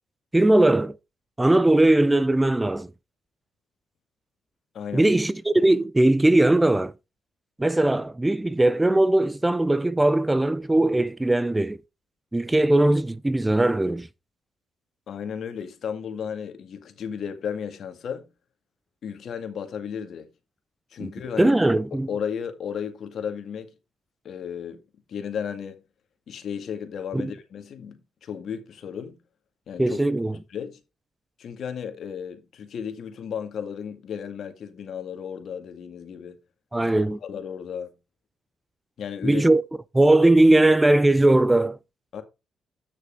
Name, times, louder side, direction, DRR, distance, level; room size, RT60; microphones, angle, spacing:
voice 1, 0.3-1.0 1.4-2.9 4.9-6.9 7.6-11.8 12.3-14.1 21.0-21.1 21.4-22.1 27.1-27.3 29.8-30.4 36.7-37.2 39.2-39.6 39.9-41.8, right 1 dB, 10° right, 0.4 m, -19 dB
voice 2, 4.7-5.1 15.1-18.3 19.0-20.3 20.9-21.6 21.9-23.7 24.2-24.8 25.1-25.8 26.3-29.2 29.7-30.0 30.3-30.8 31.4-36.4 36.8-36.9 37.2-37.9 39.0-39.4 42.1-42.2, left 7 dB, 60° left, 2.0 m, -34 dB
9.3 x 6.5 x 4.6 m
cardioid pair, 90°, 0 cm